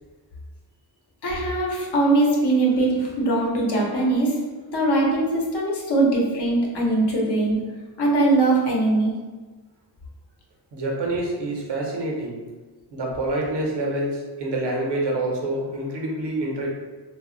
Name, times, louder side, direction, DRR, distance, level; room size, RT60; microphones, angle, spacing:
voice 1, 1.2-4.3 4.7-7.6 8.0-9.1, right 2 dB, 65° left, -2 dB, 0.8 m, -21 dB
voice 2, 10.7-12.5 12.9-16.7, right 1 dB, 70° right, -1 dB, 0.8 m, -27 dB
2.3 x 2.1 x 3.7 m, 1.3 s
wide cardioid pair, 105°, 42 cm